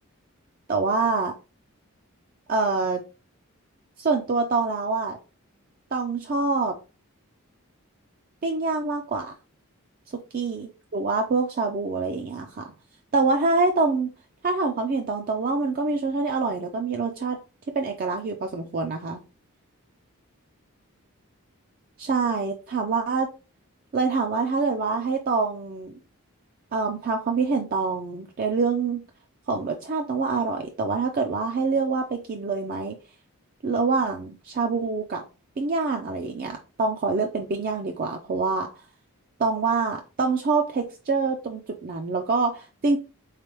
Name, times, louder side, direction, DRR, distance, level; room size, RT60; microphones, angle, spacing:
voice 1, 0.7-1.3 2.5-3.0 4.0-5.2 5.9-6.8 8.4-9.3 10.1-12.7 13.1-14.1 14.4-17.4 17.7-19.2 22.0-23.3 23.9-25.9 26.7-29.0 29.5-33.0 33.6-35.2 35.6-38.7 39.4-43.0, right 4 dB, 40° right, 3 dB, 0.4 m, -25 dB
3.8 x 3.2 x 3.0 m, 0.32 s
head